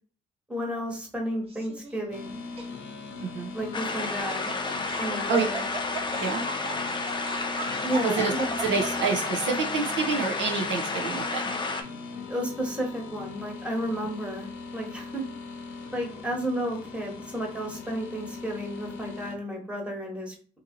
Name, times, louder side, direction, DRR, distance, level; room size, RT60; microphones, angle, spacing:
voice 1, 0.5-2.4 3.5-4.5 5.0-5.7 7.8-8.5 12.3-15.2 15.9-20.3, equal, 5° right, 0 dB, 1.2 m, -32 dB
Laughter, 1.5-2.0 2.6-2.7 3.9-9.5, right 3 dB, 30° right, 1.0 m, -38 dB
sound 1, 2.1-19.3, left 4 dB, 90° left, 0.7 m, -40 dB
voice 2, 3.2-3.5 5.3-5.4 6.2-6.4 8.0-8.3 8.6-11.4, right 5 dB, 70° right, 2 dB, 0.6 m, -27 dB
sound 2, 3.7-11.8, left 3 dB, 25° left, 0.6 m, -31 dB
2.7 x 2.7 x 3.7 m, 0.41 s
cardioid pair, 90°, 20 cm